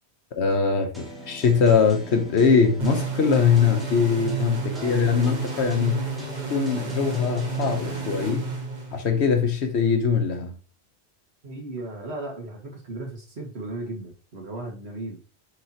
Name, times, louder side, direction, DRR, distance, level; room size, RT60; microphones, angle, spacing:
voice 1, 0.4-6.1 6.5-8.5 8.9-10.5, left 5 dB, 85° left, 1.3 m, -22 dB
sound 1, 0.9-8.6, left 1 dB, ahead, 1.7 m, -42 dB
sound 2, 2.8-9.3, right 5 dB, 45° right, 1.5 m, -32 dB
voice 2, 11.4-15.2, right 2 dB, 75° right, 2.1 m, -36 dB
6.6 x 5.1 x 2.9 m
omnidirectional pair, 1.1 m